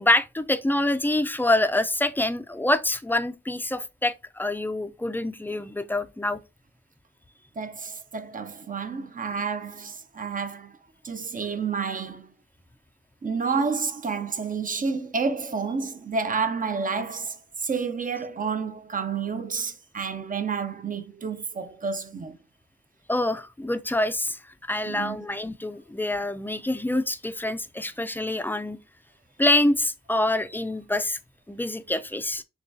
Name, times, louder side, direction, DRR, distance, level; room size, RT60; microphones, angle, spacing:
voice 1, 0.0-6.4 23.1-24.4 24.7-28.8 29.4-31.2 31.5-32.4, left 1 dB, 10° left, 0.4 m, -26 dB
voice 2, 7.6-10.8 11.0-12.3 13.2-22.4 24.9-25.2, right 5 dB, 40° right, 0.6 m, -30 dB
6.7 x 2.3 x 2.6 m
wide cardioid pair, 95°, 20 cm